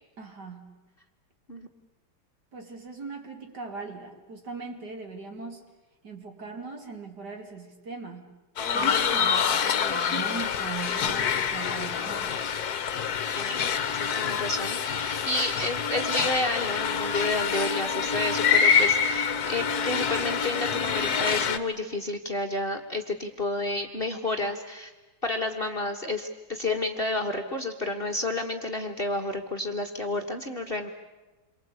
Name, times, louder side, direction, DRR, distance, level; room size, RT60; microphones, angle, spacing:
voice 1, 0.2-0.8 2.5-5.6 6.0-8.3 8.7-12.4, right 4 dB, 55° right, 4 dB, 3.1 m, -40 dB
sound 1, 8.6-21.6, left 7 dB, 55° left, 1.5 m, -26 dB
voice 2, 13.9-24.9 25.2-30.9, left 2 dB, 30° left, 3 dB, 1.5 m, -30 dB
28.0 x 23.0 x 8.4 m, 1.1 s
omnidirectional pair, 2.2 m